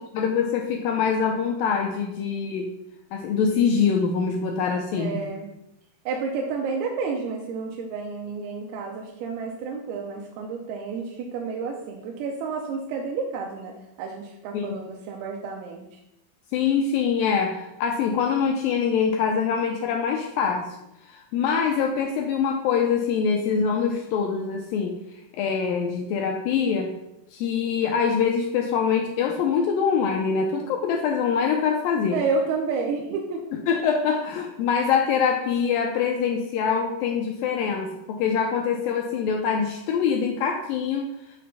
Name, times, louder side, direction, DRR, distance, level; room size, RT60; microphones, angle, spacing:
voice 1, 0.1-2.7 3.1-5.2 14.5-14.8 16.5-20.8 21.1-25.0 25.3-26.9 27.3-32.2 33.7-41.1, left 6 dB, 85° left, 2 dB, 2.1 m, -24 dB
voice 2, 5.0-5.5 6.1-15.9 32.1-33.4, right 4 dB, 85° right, 1 dB, 2.6 m, -30 dB
6.3 x 4.3 x 5.4 m, 0.87 s
omnidirectional pair, 4.5 m